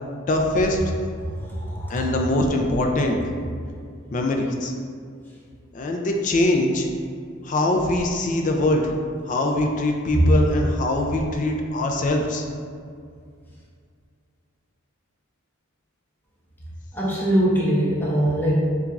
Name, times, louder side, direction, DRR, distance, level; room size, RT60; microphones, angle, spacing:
voice 1, 0.3-0.9 1.9-3.2 4.1-4.7 5.7-6.9 7.4-8.8 9.3-12.5, left 1 dB, 35° left, 2 dB, 0.3 m, -22 dB
voice 2, 1.2-2.0 10.1-10.2 16.9-18.6, right 1 dB, 10° left, -7 dB, 0.8 m, -22 dB
6.9 x 2.3 x 2.4 m, 2.2 s
head